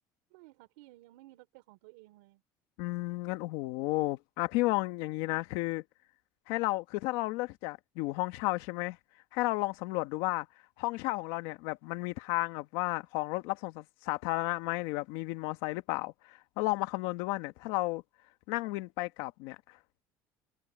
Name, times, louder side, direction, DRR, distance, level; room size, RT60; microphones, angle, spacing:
voice 1, 0.3-2.4, right 19 dB, 90° right, 4.0 m, -56 dB
voice 2, 2.8-5.8 6.5-9.0 9.3-10.5 10.8-18.0 18.5-19.8, left 20 dB, 80° left, 1.7 m, -33 dB
cardioid pair, 115°, 8 cm